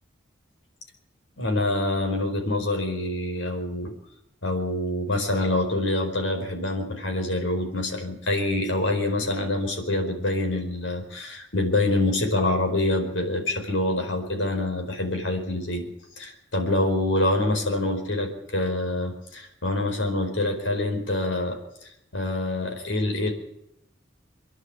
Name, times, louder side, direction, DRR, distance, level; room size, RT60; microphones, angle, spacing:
voice 1, 1.4-4.0 4.4-23.3, left 2 dB, 90° left, 3 dB, 4.7 m, -26 dB
25.0 x 11.0 x 9.7 m, 0.80 s
head